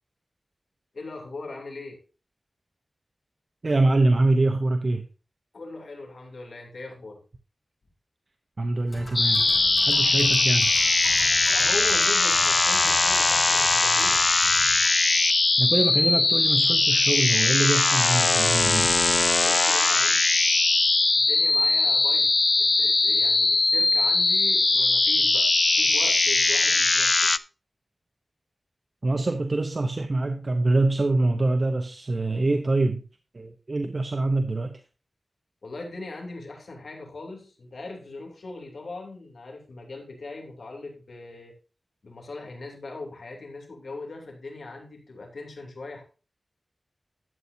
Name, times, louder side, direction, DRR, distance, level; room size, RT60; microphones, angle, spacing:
voice 1, 0.9-2.0 5.5-7.2 11.5-14.2 19.4-20.3 21.2-25.5 25.7-27.5 35.6-41.5 42.0-46.0, left 3 dB, 85° left, 2.9 m, -39 dB
voice 2, 3.6-5.1 8.6-9.4 9.9-10.7 15.6-18.9 29.0-33.0 33.3-34.8, right 2 dB, 55° right, 0.8 m, -24 dB
sound 1, 8.9-14.9, left 1 dB, 35° left, 6.0 m, -41 dB
sound 2, 9.2-27.4, left 3 dB, 50° left, 0.3 m, -21 dB
12.0 x 8.3 x 2.7 m
wide cardioid pair, 50°, 0 cm